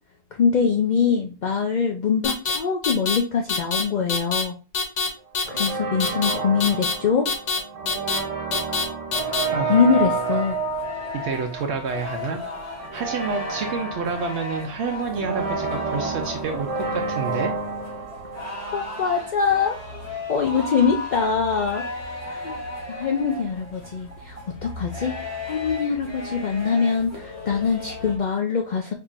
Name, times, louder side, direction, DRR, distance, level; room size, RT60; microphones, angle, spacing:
voice 1, 0.4-4.6 5.5-7.3 9.7-10.6 18.7-19.8 20.3-21.8 22.3-22.6 22.9-28.9, left 6 dB, 50° left, 2 dB, 0.6 m, -23 dB
sound 1, 2.2-2.6 2.8-3.2 3.5-3.8 4.1-4.4 4.7-5.1 5.3-5.7 6.0-6.3 6.6-6.9 7.2-7.6 7.9-8.2 8.5-8.8 9.1-9.4, left 4 dB, 90° left, 1.3 m, -24 dB
sound 2, 5.4-19.2, right 4 dB, 35° right, 0.7 m, -30 dB
sound 3, 9.2-28.2, left 2 dB, 70° left, 1.7 m, -36 dB
voice 2, 11.1-12.4 12.9-17.5, right 5 dB, 70° right, 3 dB, 0.9 m, -28 dB
5.5 x 2.9 x 2.4 m, 0.33 s
omnidirectional pair, 1.2 m